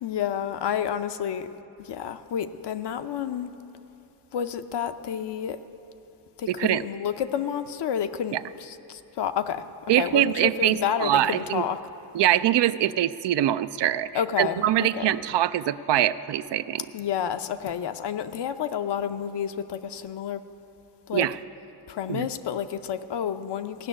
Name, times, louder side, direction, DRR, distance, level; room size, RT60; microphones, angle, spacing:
voice 1, 0.0-1.5 1.8-3.5 4.3-5.6 6.4-9.6 10.0-11.8 14.1-15.1 16.9-20.4 21.1-21.3 21.9-23.9, left 8 dB, 75° left, 9 dB, 0.7 m, -30 dB
voice 2, 6.5-6.8 8.3-8.4 9.9-11.6 12.1-14.1 14.4-16.8 21.1-21.4 22.1-22.3, right 12 dB, 75° right, 13 dB, 0.5 m, -23 dB
16.0 x 6.3 x 9.8 m, 2.8 s
cardioid pair, 85°, 42 cm